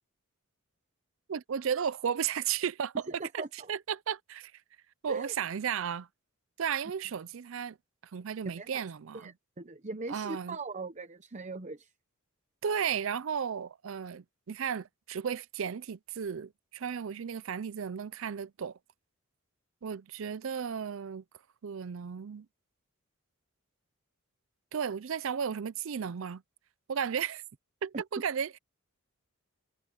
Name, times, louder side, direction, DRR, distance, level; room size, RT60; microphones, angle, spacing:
voice 1, 1.3-3.0 3.3-3.4 3.7-4.5 5.0-6.1 6.6-7.8 8.1-9.3 10.1-10.6 12.6-18.8 19.8-21.2 21.6-22.5 24.7-26.4 26.9-27.4 27.8-28.6, right 7 dB, 65° right, 0.4 m, -34 dB
voice 2, 3.1-3.7 5.1-5.3 8.4-8.8 9.1-11.9 27.9-28.0, right 3 dB, 35° right, 0.8 m, -40 dB
head